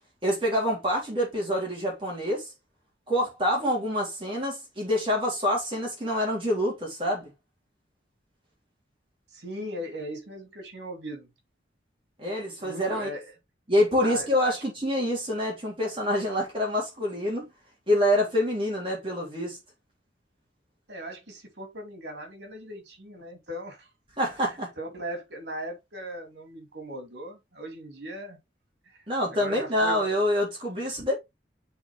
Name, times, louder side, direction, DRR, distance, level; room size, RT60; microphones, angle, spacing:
voice 1, 0.2-2.5 3.1-7.3 12.2-13.1 13.7-17.4 17.9-19.6 24.2-24.7 29.1-31.1, equal, 30° right, 3.3 m, -26 dB
voice 2, 9.3-11.3 12.6-13.3 14.0-14.6 20.9-23.9 24.8-28.4 28.9-29.0 29.3-30.1, equal, 70° right, 3.0 m, -38 dB
7.9 x 4.6 x 3.5 m
head